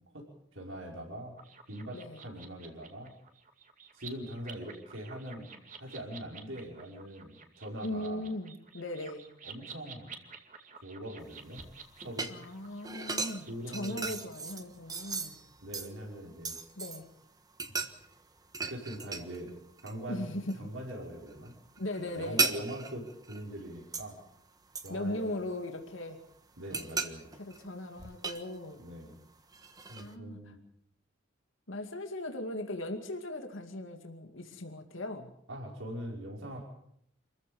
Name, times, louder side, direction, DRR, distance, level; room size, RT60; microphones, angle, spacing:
voice 1, 0.5-1.4 1.7-3.1 3.9-5.5 5.8-8.3 9.4-10.1 10.8-11.6 12.0-12.4 13.5-14.1 15.6-16.6 17.7-17.9 18.6-19.5 19.8-21.5 22.2-24.2 24.8-25.3 26.6-27.3 28.8-29.2 29.9-30.6 35.5-36.7, equal, 80° right, -1 dB, 5.4 m, -42 dB
sound 1, 1.4-14.1, right 6 dB, 40° right, 2.4 m, -51 dB
voice 2, 1.9-2.2 7.8-9.3 12.3-15.4 16.8-17.1 20.1-20.7 21.8-22.5 24.9-26.2 27.3-28.8 30.0-30.5 31.7-35.3, left 1 dB, 80° left, 4 dB, 2.4 m, -38 dB
sound 2, 11.2-17.1 17.5-19.5 19.8-20.6 20.9-24.2 24.7-25.9 26.3-29.0 29.5-30.1, right 4 dB, 20° right, 1.4 m, -37 dB
27.5 x 15.0 x 7.1 m, 0.70 s
head